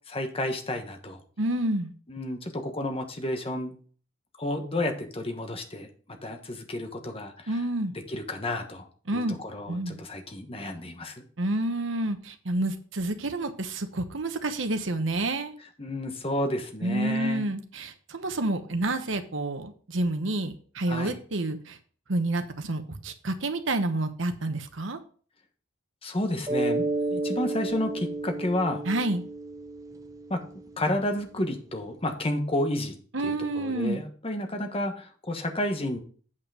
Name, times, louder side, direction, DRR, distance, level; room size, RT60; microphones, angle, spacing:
voice 1, 0.1-1.2 2.1-3.7 4.4-5.9 6.2-7.5 7.9-8.9 9.1-11.2 15.8-17.5 20.9-21.2 26.0-28.8 30.3-30.4 30.8-33.0 33.2-36.0, left 1 dB, 30° left, 5 dB, 1.3 m, -31 dB
voice 2, 1.4-1.9 7.5-7.9 9.1-9.4 9.7-10.0 11.4-15.5 16.8-21.8 22.1-25.0 28.9-29.2 33.1-34.0, right 2 dB, 65° right, 8 dB, 1.1 m, -29 dB
Mallet percussion, 26.5-30.9, right 2 dB, 15° right, 0.7 m, -31 dB
8.4 x 5.7 x 4.9 m, 0.43 s
head